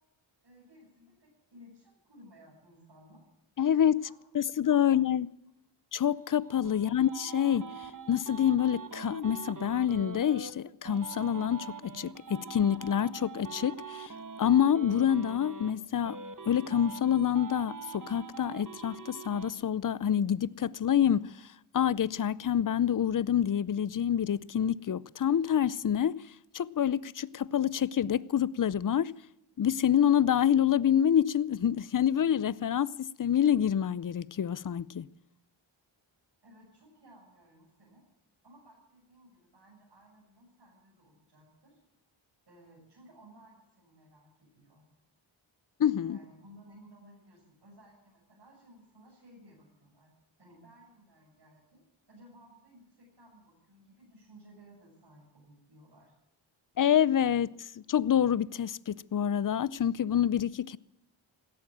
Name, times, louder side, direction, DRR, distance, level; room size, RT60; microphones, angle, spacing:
voice 1, 0.4-3.2 4.0-4.2 4.5-5.0 6.8-7.0 36.4-38.0 38.4-41.8 42.5-44.9 46.1-50.1 50.4-51.8 52.1-56.1, equal, 55° right, 6.9 m, -57 dB
voice 2, 3.6-4.0 4.3-5.3 5.9-7.7 8.1-14.1 14.4-16.2 16.4-21.4 21.7-29.1 29.6-35.1 45.8-46.2 56.8-60.8, left 9 dB, 45° left, 0.6 m, -27 dB
sound 1, 6.2-10.5 10.9-15.7 16.0-19.5, right 5 dB, 40° right, 1.7 m, -44 dB
17.5 x 13.0 x 6.3 m
wide cardioid pair, 75°, 47 cm